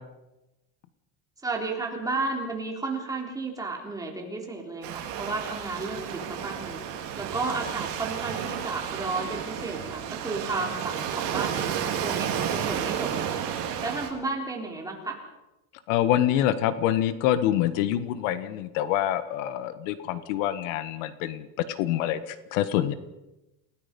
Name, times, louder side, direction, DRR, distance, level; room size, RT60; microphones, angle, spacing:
voice 1, 1.4-13.4 13.8-15.2, right 3 dB, 10° right, 0 dB, 3.7 m, -33 dB
Waves surf, 4.8-14.1, right 9 dB, 50° right, 4.3 m, -32 dB
voice 2, 15.9-22.9, left 12 dB, 75° left, 12 dB, 1.5 m, -26 dB
28.5 x 18.0 x 5.4 m, 0.97 s
cardioid pair, 165°, 39 cm